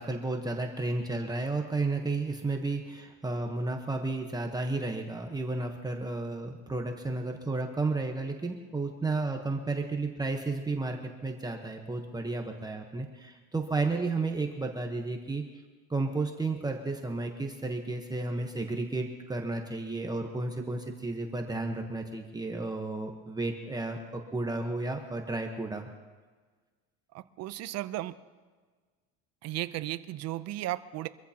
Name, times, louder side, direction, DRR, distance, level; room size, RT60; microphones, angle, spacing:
voice 1, 0.0-15.4 15.9-25.9, right 3 dB, 10° right, 2 dB, 1.1 m, -32 dB
voice 2, 27.1-28.2 29.4-31.1, right 15 dB, 45° right, 13 dB, 0.7 m, -35 dB
24.5 x 14.5 x 2.9 m, 1.4 s
cardioid pair, 135°, 35 cm